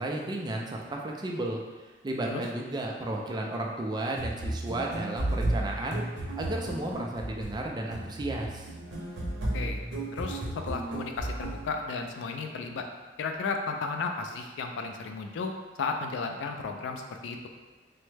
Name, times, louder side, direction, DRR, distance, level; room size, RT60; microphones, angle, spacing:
voice 1, 0.0-1.6 2.0-6.0 6.3-8.7, right 1 dB, 25° right, 0 dB, 0.3 m, -33 dB
sound 1, 4.1-11.8, right 1 dB, 85° right, 0.6 m, -34 dB
voice 2, 10.1-12.9 13.2-15.5 15.8-17.5, left 4 dB, 80° left, 4 dB, 0.3 m, -34 dB
3.2 x 2.1 x 3.2 m, 1.2 s
head